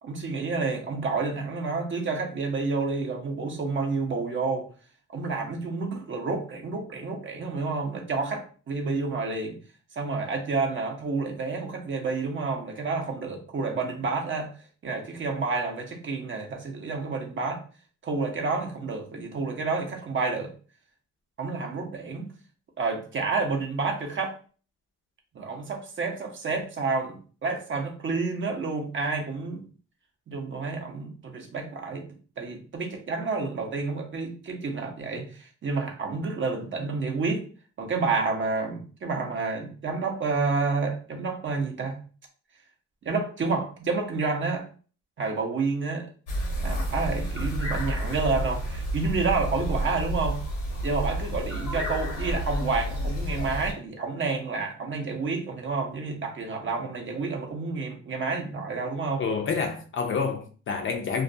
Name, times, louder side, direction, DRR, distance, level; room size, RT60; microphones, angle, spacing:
voice 1, 0.0-4.7 5.1-9.6 10.0-14.5 14.8-17.6 18.0-20.5 21.4-22.3 22.8-24.4 25.3-29.6 30.3-32.1 32.4-37.4 37.8-42.0 43.0-44.7 45.2-46.1 46.6-50.4 50.8-59.2, right 4 dB, 40° right, 0.6 m, -29 dB
sound 1, 46.3-53.7, right 1 dB, 85° left, 1.0 m, -30 dB
voice 2, 59.2-61.2, left 5 dB, 40° left, 0.5 m, -28 dB
2.3 x 2.2 x 2.5 m
cardioid pair, 90°, 30 cm